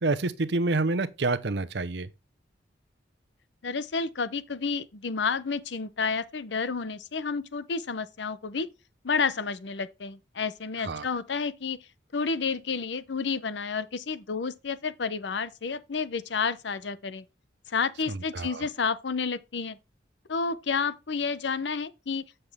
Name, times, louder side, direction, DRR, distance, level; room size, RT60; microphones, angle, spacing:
voice 1, 0.0-2.1 10.8-11.0 18.1-18.6, right 3 dB, 65° right, 0.8 m, -28 dB
voice 2, 3.6-8.7 9.0-11.8 12.1-17.2 17.7-19.8 20.3-22.2, left 5 dB, 75° left, 0.7 m, -30 dB
7.8 x 6.7 x 3.5 m
head